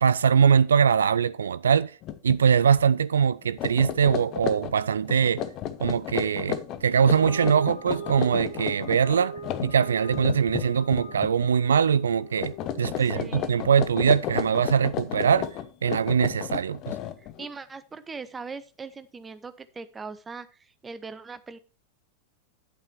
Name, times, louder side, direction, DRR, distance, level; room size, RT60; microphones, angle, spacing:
voice 1, 0.0-1.9 2.2-5.4 5.8-15.5 15.8-17.0, right 7 dB, 70° right, 0.3 m, -22 dB
sound 1, 2.0-2.4 2.7-2.9 3.4-11.5 11.8-12.1 12.4-17.5, left 10 dB, 35° left, 1.0 m, -33 dB
sound 2, 6.8-13.4, right 2 dB, 75° left, 4.5 m, -40 dB
voice 2, 13.0-13.6 17.2-21.6, right 4 dB, 15° right, 1.0 m, -40 dB
10.0 x 8.6 x 3.2 m
figure-of-eight pair, 90°, 0 cm